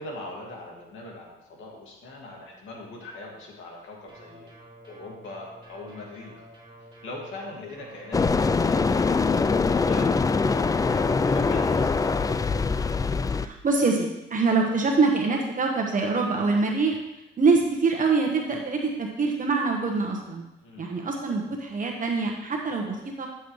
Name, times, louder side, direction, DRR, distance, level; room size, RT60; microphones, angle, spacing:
voice 1, 0.0-4.5 4.9-6.5 6.8-12.5 20.6-21.0, left 2 dB, 75° left, -1 dB, 2.1 m, -41 dB
sound 1, 4.1-13.1, right 1 dB, 20° right, 3.2 m, -50 dB
sound 2, 8.1-13.5, left 4 dB, 20° left, 0.3 m, -23 dB
voice 2, 13.4-17.0 17.4-20.4 20.8-23.3, right 4 dB, 40° right, 0 dB, 1.3 m, -24 dB
9.9 x 7.1 x 3.2 m, 0.95 s
cardioid pair, 90°, 20 cm